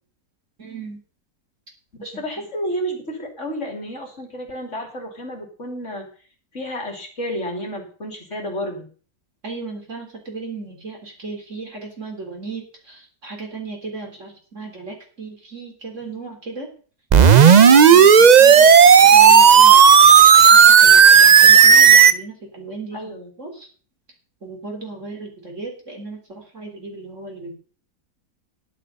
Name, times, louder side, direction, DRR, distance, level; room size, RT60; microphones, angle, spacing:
voice 1, 0.6-1.0 2.0-2.5 9.4-16.7 17.3-19.8 20.5-23.0 23.4-23.7 24.4-27.6, right 3 dB, 50° right, 1 dB, 4.1 m, -36 dB
voice 2, 2.0-6.1 6.5-8.9 16.0-16.2 22.9-23.3, equal, 45° left, 2 dB, 3.1 m, -31 dB
sound 1, 17.1-22.1, right 7 dB, 75° right, 0.4 m, -9 dB
12.0 x 11.0 x 5.4 m, 0.41 s
omnidirectional pair, 1.7 m